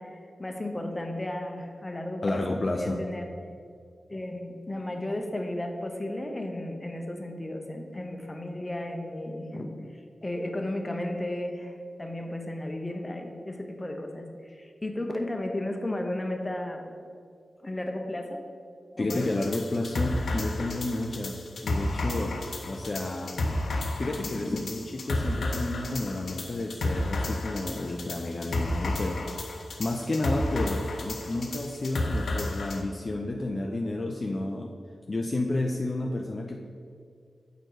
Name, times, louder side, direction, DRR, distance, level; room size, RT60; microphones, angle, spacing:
voice 1, 0.0-3.3 4.1-9.7 10.2-16.9 17.6-18.4 18.9-19.4 24.2-24.4, left 1 dB, 20° left, 3 dB, 0.8 m, -34 dB
voice 2, 2.2-3.0 19.0-23.4 24.0-29.2 29.8-34.7 35.1-36.6, left 2 dB, 40° left, 1 dB, 0.5 m, -31 dB
sound 1, 19.1-32.8, left 2 dB, 85° left, 0.8 m, -32 dB
7.8 x 4.4 x 4.8 m, 2.3 s
wide cardioid pair, 95°, 0 cm